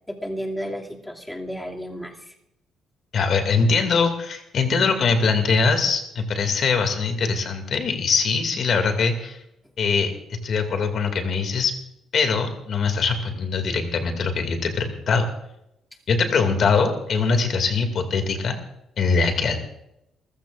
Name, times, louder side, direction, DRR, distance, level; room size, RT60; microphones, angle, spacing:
voice 1, 0.1-2.3 16.3-16.6, equal, 10° left, 0 dB, 2.6 m, -33 dB
voice 2, 3.1-9.4 9.8-11.7 12.1-15.3 16.1-18.6 19.0-19.6, left 4 dB, 60° left, 6 dB, 2.4 m, -22 dB
27.5 x 15.0 x 2.5 m, 0.81 s
cardioid pair, 90°, 0 cm